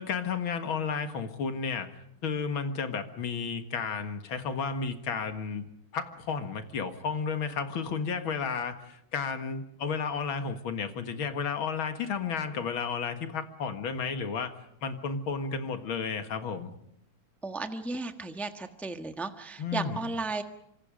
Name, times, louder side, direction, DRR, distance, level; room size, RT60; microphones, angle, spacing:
voice 1, 0.0-1.9 2.2-5.7 5.9-14.5 14.8-16.7 19.6-20.0, left 5 dB, 75° left, 8 dB, 2.4 m, -32 dB
voice 2, 17.4-20.4, right 3 dB, ahead, 6 dB, 1.0 m, -34 dB
27.5 x 25.5 x 5.1 m, 0.79 s
omnidirectional pair, 2.2 m